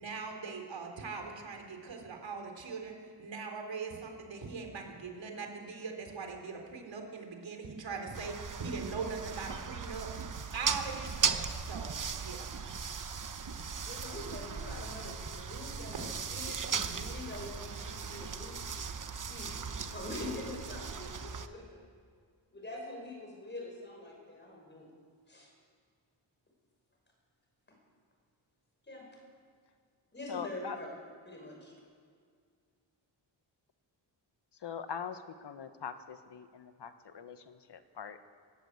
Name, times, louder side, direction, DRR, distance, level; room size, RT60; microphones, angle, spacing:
voice 1, 0.0-2.9 3.2-10.1 10.5-12.5 15.9-16.1, right 4 dB, 75° right, 3 dB, 3.9 m, -41 dB
sound 1, 8.1-21.5, right 6 dB, 45° right, 1.1 m, -37 dB
voice 2, 13.8-18.6 19.1-21.9 22.5-24.9 25.3-25.5 27.7-27.8 28.8-29.1 30.1-30.9 31.2-31.7, left 2 dB, 25° left, 0 dB, 6.3 m, -45 dB
voice 3, 30.3-30.8 34.6-38.2, left 7 dB, 65° left, 9 dB, 1.4 m, -42 dB
19.5 x 18.0 x 8.1 m, 2.1 s
wide cardioid pair, 140°, 45 cm